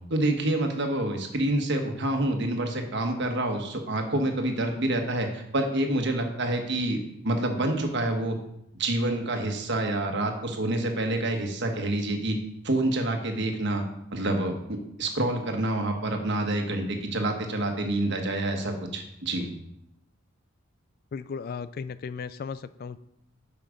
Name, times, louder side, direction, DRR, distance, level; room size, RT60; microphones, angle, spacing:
voice 1, 0.1-8.4 8.7-12.4 12.6-13.8 14.1-19.5, right 1 dB, 55° right, 4 dB, 1.3 m, -27 dB
voice 2, 21.1-23.0, left 5 dB, 45° left, 14 dB, 0.3 m, -36 dB
8.3 x 5.8 x 5.1 m, 0.79 s
head